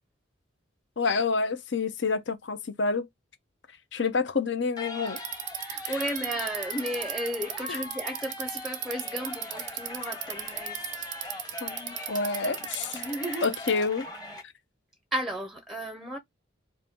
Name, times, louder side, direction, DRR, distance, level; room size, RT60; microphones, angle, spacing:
voice 1, 1.0-3.1 3.9-5.2 5.8-6.0 7.7-7.8 11.6-13.0 13.4-14.1, left 4 dB, 65° left, 0.7 m, -28 dB
sound 1, 4.8-14.4, left 2 dB, 20° left, 1.0 m, -41 dB
Bicycle, 5.1-13.9, right 12 dB, 60° right, 0.5 m, -36 dB
voice 2, 5.6-10.8 12.9-13.5 15.1-16.2, equal, ahead, 0.6 m, -34 dB
4.3 x 2.6 x 3.5 m
head